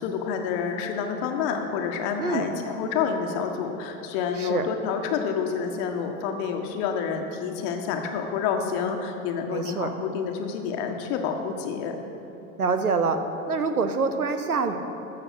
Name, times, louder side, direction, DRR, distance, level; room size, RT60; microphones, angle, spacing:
voice 1, 0.0-12.0, left 6 dB, 50° left, 4 dB, 1.4 m, -28 dB
voice 2, 9.5-9.9 12.6-13.2 13.5-14.8, right 4 dB, 90° right, 9 dB, 0.8 m, -25 dB
14.5 x 6.2 x 6.3 m, 3.0 s
figure-of-eight pair, 80°, 43 cm